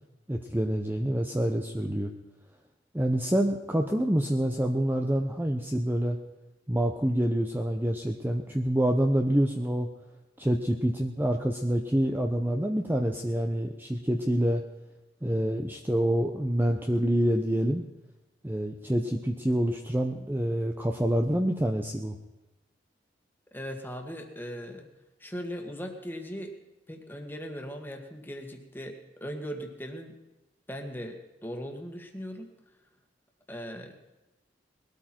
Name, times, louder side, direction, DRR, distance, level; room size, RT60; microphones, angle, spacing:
voice 1, 0.3-2.1 2.9-6.2 6.7-9.9 10.4-14.6 15.2-17.8 18.4-22.2, equal, 10° right, 4 dB, 0.8 m, -27 dB
voice 2, 23.5-24.9 25.2-26.5 26.9-30.2 30.7-32.5 33.5-33.9, equal, 10° left, 3 dB, 1.9 m, -39 dB
20.5 x 13.0 x 4.5 m, 1.1 s
head